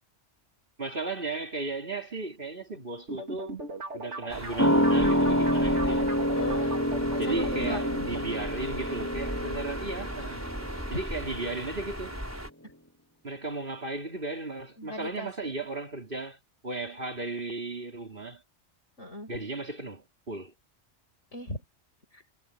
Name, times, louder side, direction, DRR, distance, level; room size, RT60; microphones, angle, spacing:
voice 1, 0.8-3.6 3.9-6.1 7.2-10.4 10.9-12.2 13.2-16.4 16.6-18.4 19.3-20.5, right 3 dB, 45° right, 3.8 m, -35 dB
sound 1, 3.1-8.2, right 2 dB, 75° right, 3.1 m, -38 dB
sound 2, 4.3-12.5, equal, 15° right, 5.2 m, -38 dB
sound 3, 4.6-11.6 11.9-12.0, equal, 10° left, 7.1 m, -27 dB
voice 2, 6.3-6.7 7.1-7.8 14.8-15.5 19.0-19.3 21.3-21.6 22.1-22.3, left 1 dB, 85° left, 7.2 m, -39 dB
omnidirectional pair, 1.2 m